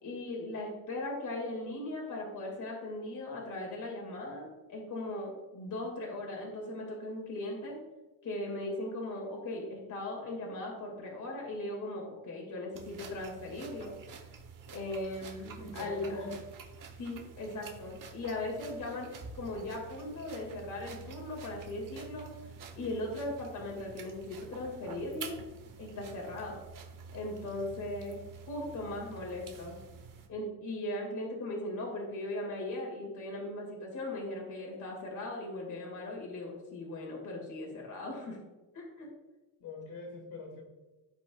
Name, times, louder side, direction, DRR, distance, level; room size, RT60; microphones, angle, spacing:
voice 1, 0.0-7.8 8.2-13.9 14.7-16.2 17.0-19.1 19.3-22.3 22.8-25.4 25.8-26.6 27.1-29.8 30.3-38.4 38.7-39.1, left 2 dB, 45° left, -1 dB, 2.3 m, -38 dB
sound 1, 12.7-30.3, right 5 dB, 45° right, 1.1 m, -49 dB
voice 2, 15.6-16.4 39.6-40.6, left 2 dB, 60° left, -2 dB, 2.4 m, -42 dB
15.0 x 5.1 x 2.4 m, 1.1 s
cardioid pair, 135°, 44 cm